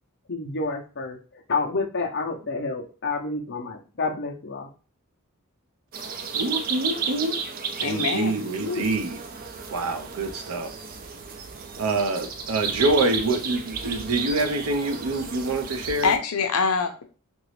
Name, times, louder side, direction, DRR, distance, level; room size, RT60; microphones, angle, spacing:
voice 1, 0.3-1.2 1.5-4.7, left 3 dB, 50° left, 0.8 m, -29 dB
sound 1, 5.9-16.2, right 6 dB, 40° right, 0.4 m, -33 dB
voice 2, 6.3-7.4 7.8-9.2 9.7-10.7 11.8-16.1, right 2 dB, 80° right, 0.6 m, -26 dB
voice 3, 7.8-8.3 8.6-8.8 16.0-17.0, left 5 dB, 85° left, 0.7 m, -24 dB
2.9 x 2.6 x 3.1 m
head